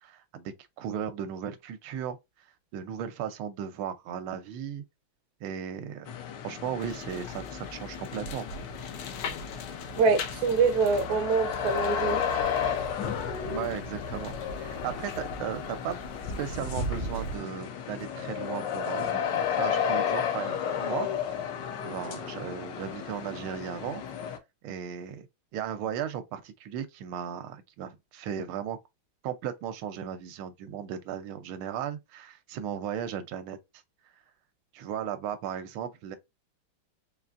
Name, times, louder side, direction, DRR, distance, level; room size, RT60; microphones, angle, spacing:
voice 1, 0.0-2.2 2.7-4.8 5.4-6.1 6.4-8.5 13.5-16.0 16.4-19.2 19.5-24.0 24.6-25.3 25.5-28.8 29.2-33.6 34.7-36.2, right 9 dB, 80° right, 1.4 m, -36 dB
sound 1, 6.1-24.4, left 8 dB, 70° left, 1.2 m, -33 dB
sound 2, 6.8-17.4, left 1 dB, 90° left, 1.7 m, -39 dB
voice 2, 10.0-12.2, right 4 dB, 60° right, 1.1 m, -24 dB
4.1 x 3.3 x 2.4 m
omnidirectional pair, 2.3 m